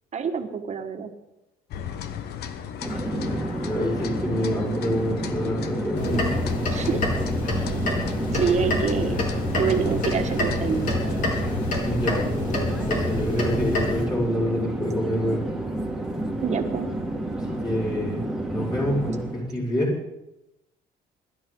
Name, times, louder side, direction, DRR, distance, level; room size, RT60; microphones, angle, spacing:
voice 1, 0.1-1.1 6.7-7.0 8.3-9.3 9.6-11.3 16.4-16.9, right 6 dB, 40° right, 6 dB, 1.7 m, -26 dB
sound 1, 1.7-12.2, left 8 dB, 70° left, 1.2 m, -37 dB
Conversation / Chatter / Fixed-wing aircraft airplane, 2.8-19.5, right 1 dB, 5° right, 2.2 m, -30 dB
voice 2, 3.0-3.4 3.7-6.3 11.8-15.4 17.4-18.2 18.5-19.9, equal, 25° left, -5 dB, 5.7 m, -27 dB
sound 2, 5.9-14.1, left 2 dB, 50° left, 4.1 m, -27 dB
21.5 x 12.0 x 3.9 m, 0.91 s
cardioid pair, 110°, 17 cm